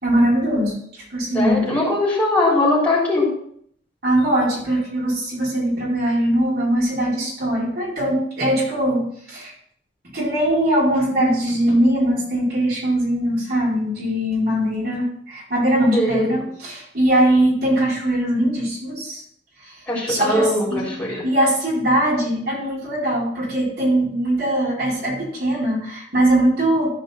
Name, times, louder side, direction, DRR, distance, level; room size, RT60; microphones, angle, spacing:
voice 1, 0.0-1.8 4.0-9.5 10.1-19.2 19.6-19.7 20.1-20.9 21.2-26.9, right 1 dB, 60° right, -6 dB, 4.4 m, -21 dB
voice 2, 1.3-3.3 15.9-16.3 19.9-21.2, left 1 dB, 10° left, -6 dB, 4.0 m, -20 dB
14.0 x 5.1 x 4.4 m, 0.64 s
head